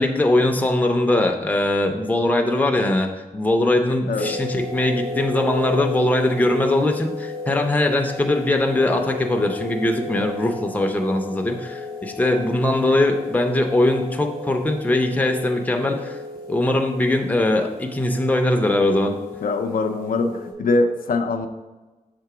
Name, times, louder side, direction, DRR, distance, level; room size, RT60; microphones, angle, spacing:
voice 1, 0.0-16.2 16.5-19.2, left 1 dB, 10° left, 3 dB, 0.5 m, -21 dB
sound 1, 4.2-20.5, left 2 dB, 80° right, 2.1 m, -34 dB
voice 2, 19.4-21.5, left 3 dB, 80° left, 5 dB, 0.5 m, -22 dB
6.7 x 3.7 x 4.8 m, 1.2 s
wide cardioid pair, 180°, 15 cm